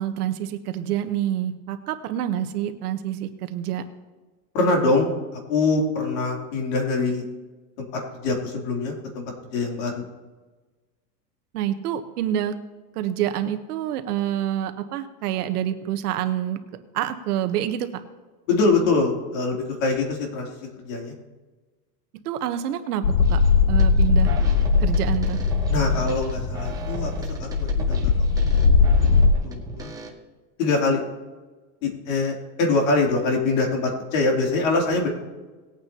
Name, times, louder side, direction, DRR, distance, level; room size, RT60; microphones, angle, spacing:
voice 1, 0.0-3.8 11.5-12.5 12.9-16.6 16.9-18.0 22.2-23.4 23.7-24.3 24.8-25.4, right 11 dB, 65° right, 8 dB, 1.1 m, -27 dB
voice 2, 4.5-5.1 5.5-7.2 7.8-10.0 18.5-21.1 25.7-28.1 29.4-30.0 30.6-31.0 31.8-35.1, left 3 dB, 50° left, 0 dB, 3.0 m, -24 dB
sound 1, 23.0-29.3, left 4 dB, 75° left, 0.9 m, -20 dB
sound 2, 23.2-23.5 23.8-30.1, right 4 dB, 5° right, 0.7 m, -37 dB
19.5 x 8.8 x 2.8 m, 1.3 s
supercardioid pair, 160°, 50 cm